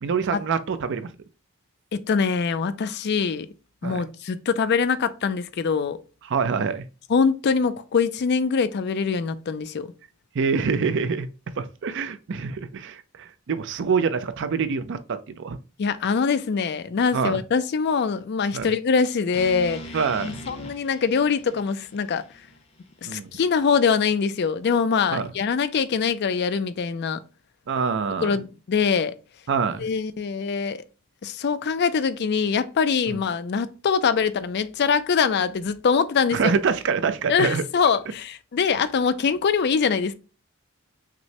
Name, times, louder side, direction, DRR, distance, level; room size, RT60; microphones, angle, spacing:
voice 1, 0.0-1.1 3.8-4.0 6.3-6.9 10.3-11.3 11.6-15.6 17.1-17.4 18.5-18.7 19.9-20.4 23.0-23.3 25.1-25.3 27.7-28.4 29.5-29.9 33.1-33.2 36.3-37.6, right 5 dB, 55° right, 0.5 m, -25 dB
voice 2, 1.9-3.5 3.8-6.0 7.1-9.9 15.8-22.2 23.0-27.2 28.2-29.1 29.8-30.8 31.2-36.5 37.3-40.1, left 5 dB, 50° left, 0.4 m, -23 dB
sound 1, 19.3-23.5, equal, 30° left, 0.7 m, -41 dB
5.9 x 2.1 x 2.7 m
head